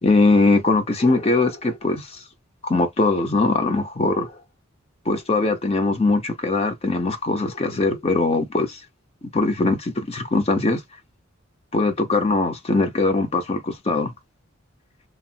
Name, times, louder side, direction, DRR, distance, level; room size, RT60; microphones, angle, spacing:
voice 1, 0.0-2.2 2.6-4.3 5.1-8.8 9.3-10.8 11.7-14.1, left 3 dB, 30° left, 0.6 m, -21 dB
3.0 x 2.0 x 2.6 m
head